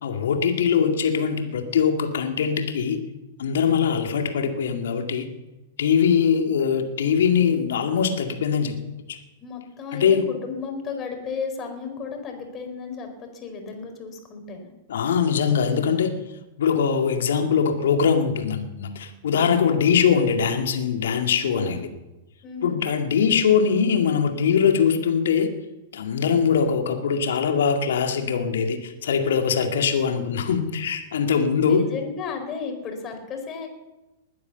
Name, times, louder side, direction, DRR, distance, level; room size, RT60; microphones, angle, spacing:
voice 1, 0.0-3.0 3.4-5.3 5.8-8.8 9.9-10.3 14.9-16.1 16.6-21.8 22.6-25.5 25.9-31.9, left 7 dB, 65° left, 5 dB, 2.2 m, -22 dB
voice 2, 9.4-14.7 21.5-21.8 22.4-22.8 31.7-33.7, left 5 dB, 30° left, 4 dB, 4.6 m, -34 dB
20.5 x 9.6 x 7.0 m, 1.0 s
figure-of-eight pair, 105°, 0 cm